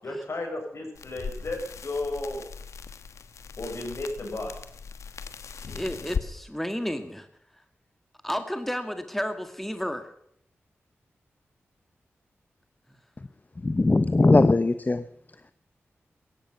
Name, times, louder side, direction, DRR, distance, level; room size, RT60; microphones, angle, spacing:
voice 1, 0.0-2.4 3.6-4.7, left 2 dB, 60° left, 2 dB, 7.3 m, -33 dB
sound 1, 1.0-6.3, left 6 dB, 85° left, 1.3 m, -38 dB
voice 2, 5.7-7.3 8.2-10.1, equal, 5° left, 8 dB, 1.9 m, -32 dB
voice 3, 13.6-15.0, left 2 dB, 35° left, 11 dB, 1.1 m, -20 dB
17.0 x 14.5 x 5.7 m, 0.73 s
cardioid pair, 45°, 5 cm